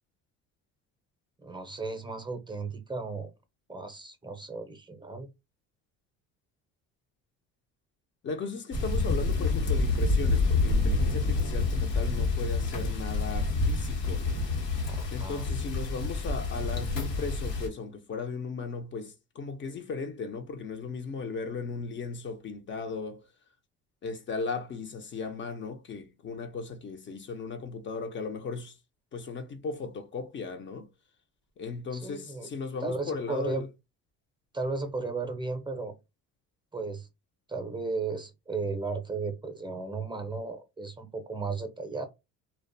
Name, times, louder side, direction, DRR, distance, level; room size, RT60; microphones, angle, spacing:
voice 1, 1.4-3.3 3.7-5.3 14.9-15.5 31.9-32.5 32.8-33.7 34.5-35.9 36.7-37.1 37.5-42.0, right 3 dB, 15° right, 0.5 m, -35 dB
voice 2, 8.2-14.2 15.1-23.2 24.0-28.7 29.1-30.9 31.6-33.6, left 4 dB, 40° left, 0.5 m, -36 dB
sound 1, 8.7-17.7, left 3 dB, 90° left, 1.0 m, -28 dB
2.4 x 2.2 x 2.5 m
cardioid pair, 95°, 31 cm